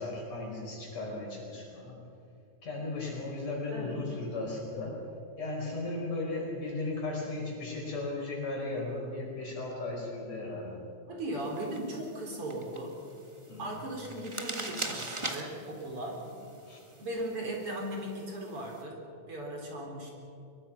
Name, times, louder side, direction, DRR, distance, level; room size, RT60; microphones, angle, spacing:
voice 1, 0.0-2.0 2.6-5.0 5.4-10.8 13.5-13.8 16.7-16.9, left 2 dB, 60° left, -1 dB, 6.3 m, -36 dB
voice 2, 11.1-12.9 13.6-16.2 17.0-19.0 19.3-20.1, right 1 dB, 50° right, 0 dB, 4.5 m, -37 dB
sound 1, 11.4-18.8, right 2 dB, 25° right, 0.7 m, -43 dB
24.0 x 22.5 x 5.9 m, 2.6 s
omnidirectional pair, 3.3 m